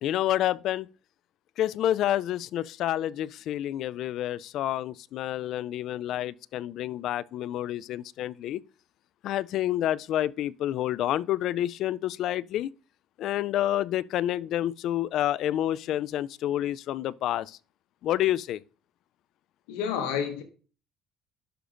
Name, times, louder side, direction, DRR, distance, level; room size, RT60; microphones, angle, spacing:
voice 1, 0.0-0.9 1.6-8.6 9.2-12.7 13.2-17.6 18.0-18.6, left 12 dB, 65° left, 0.3 m, -29 dB
voice 2, 19.7-20.4, left 7 dB, 80° left, 1.3 m, -29 dB
11.0 x 6.4 x 2.6 m
supercardioid pair, 75°, 0 cm